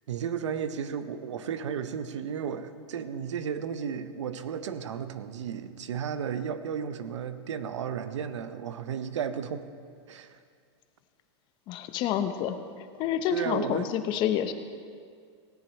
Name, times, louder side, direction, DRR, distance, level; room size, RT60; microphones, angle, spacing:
voice 1, 0.1-9.7 10.1-10.4 13.3-13.9, right 7 dB, 90° right, 11 dB, 0.9 m, -34 dB
voice 2, 11.7-14.5, left 10 dB, 30° left, 9 dB, 0.8 m, -29 dB
17.0 x 10.0 x 4.4 m, 2.2 s
supercardioid pair, 150°, 15 cm